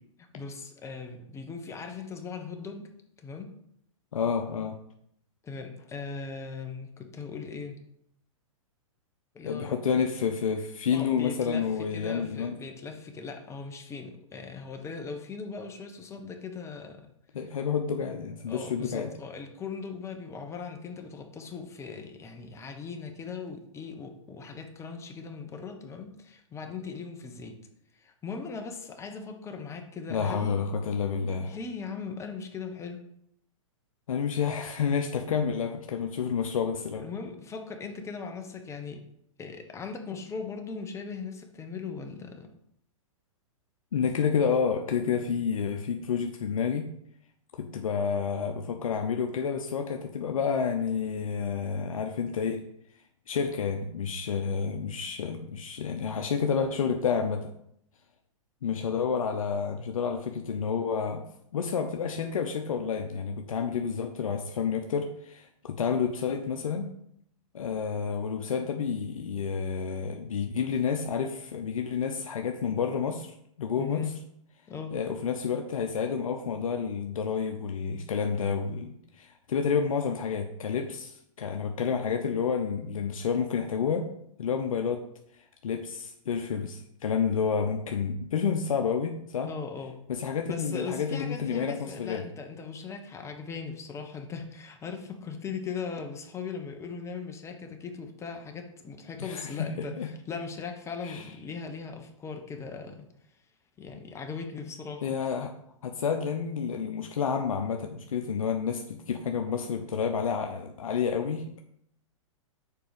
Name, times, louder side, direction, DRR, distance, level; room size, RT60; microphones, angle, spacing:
voice 1, 0.2-2.9 3.2-3.5 5.4-7.8 9.3-10.0 10.9-17.1 18.5-27.6 27.9-30.7 31.4-33.0 36.9-39.0 39.4-42.5 73.8-74.1 74.7-75.0 89.4-89.9 90.4-103.4 103.8-105.2, left 5 dB, 15° left, 4 dB, 1.1 m, -39 dB
voice 2, 4.1-4.8 9.4-12.5 17.3-19.1 30.1-31.5 34.1-37.0 43.9-46.9 47.5-52.6 53.3-57.5 58.6-61.2 61.5-66.9 67.5-74.0 74.9-84.1 84.4-85.0 85.6-89.5 90.1-92.2 99.2-100.1 101.0-101.2 105.0-105.5 105.8-111.6, left 6 dB, 80° left, 4 dB, 0.7 m, -29 dB
6.8 x 4.7 x 5.1 m, 0.73 s
hypercardioid pair, 125°, 17 cm